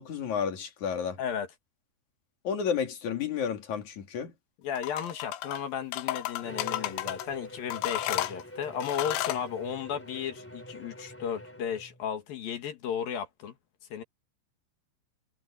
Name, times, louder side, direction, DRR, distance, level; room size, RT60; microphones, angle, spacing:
voice 1, 0.0-1.2 2.4-4.3, left 7 dB, 45° left, 3.4 m, -31 dB
voice 2, 1.2-1.5 4.6-13.5 13.9-14.0, left 8 dB, 60° left, 2.8 m, -34 dB
sound 1, 4.8-5.6 5.9-7.3 7.7-9.4, left 14 dB, 85° left, 3.8 m, -32 dB
Bowed string instrument, 6.4-12.1, equal, 5° left, 1.2 m, -45 dB
omnidirectional pair, 5.7 m